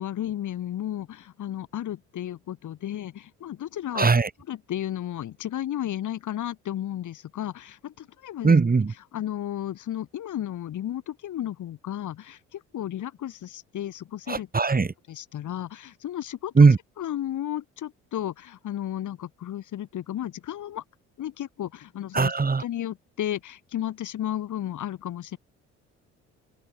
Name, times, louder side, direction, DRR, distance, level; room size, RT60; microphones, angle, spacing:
voice 1, 0.0-4.1 4.5-8.6 9.1-14.5 15.1-16.5 17.0-20.8 21.2-22.3 22.6-25.4, left 11 dB, 60° left, 2.6 m, -33 dB
voice 2, 3.9-4.3 8.4-8.9 14.3-14.9 16.6-16.8 22.1-22.6, right 4 dB, 25° right, 2.4 m, -19 dB
open air
hypercardioid pair, 60°, 35 cm